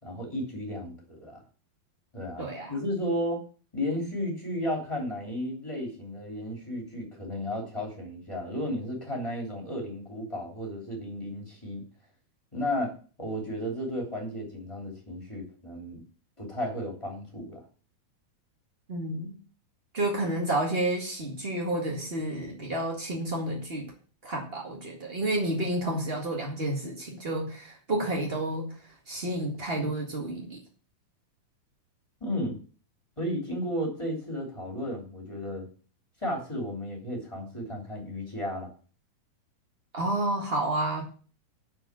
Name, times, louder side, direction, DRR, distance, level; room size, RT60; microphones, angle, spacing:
voice 1, 0.0-1.4 2.1-3.4 3.7-11.8 12.5-12.9 13.2-16.0 16.4-17.6 32.2-32.6 33.2-35.7 36.2-38.7, equal, 10° left, -1 dB, 2.2 m, -33 dB
voice 2, 2.4-2.7 18.9-19.4 19.9-23.9 24.2-28.8 29.1-30.6 39.9-41.0, right 1 dB, 60° right, -1 dB, 0.6 m, -30 dB
11.0 x 4.7 x 7.4 m, 0.40 s
omnidirectional pair, 4.5 m